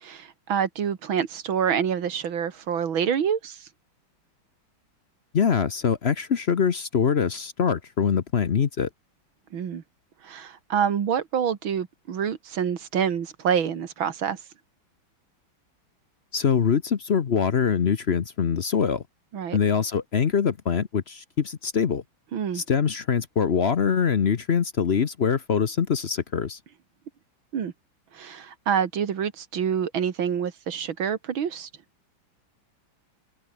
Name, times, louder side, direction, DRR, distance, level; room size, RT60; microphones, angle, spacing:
voice 1, 0.0-3.6 9.5-9.8 10.2-14.4 19.3-19.6 22.3-22.6 27.5-27.7 28.1-31.7, right 8 dB, 75° right, 2.5 m, -27 dB
voice 2, 5.3-8.9 16.3-19.0 19.5-22.0 22.5-26.6, left 6 dB, 50° left, 0.8 m, -23 dB
open air
omnidirectional pair, 2.2 m